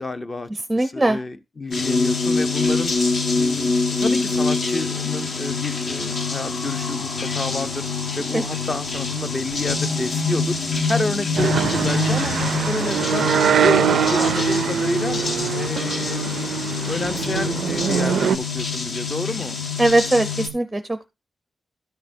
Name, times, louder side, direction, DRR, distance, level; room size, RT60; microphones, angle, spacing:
voice 1, 0.0-2.9 3.3-3.7 4.0-7.9 8.2-10.6 10.9-12.3 12.6-13.3 13.6-15.2 15.5-16.3 16.9-19.6, left 2 dB, 25° left, 0.7 m, -29 dB
voice 2, 0.7-1.2 8.3-8.4 19.8-21.1, right 2 dB, 10° right, 0.6 m, -20 dB
sound 1, 1.7-20.5, left 4 dB, 55° left, 1.4 m, -25 dB
sound 2, 4.6-12.0, left 2 dB, 80° left, 4.3 m, -42 dB
sound 3, 11.4-18.4, right 8 dB, 85° right, 0.4 m, -23 dB
13.0 x 6.6 x 2.6 m
wide cardioid pair, 170°, 0 cm